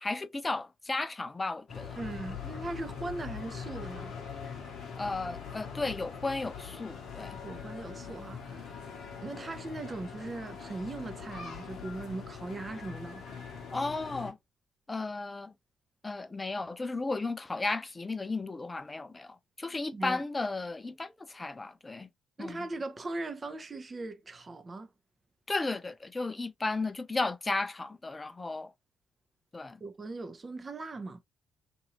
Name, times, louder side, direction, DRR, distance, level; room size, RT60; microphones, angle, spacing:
voice 1, 0.0-2.0 5.0-7.4 13.7-14.4 14.9-15.5 16.0-22.1 22.4-22.7 25.5-28.7 29.5-29.8, left 3 dB, 25° left, 0.5 m, -34 dB
sound 1, 1.7-14.3, left 6 dB, 60° left, 0.8 m, -42 dB
voice 2, 2.0-4.1 7.4-8.8 9.2-13.2 19.9-20.2 22.4-24.9 29.8-31.2, right 2 dB, 35° right, 0.6 m, -39 dB
2.7 x 2.6 x 3.0 m
figure-of-eight pair, 40°, 0 cm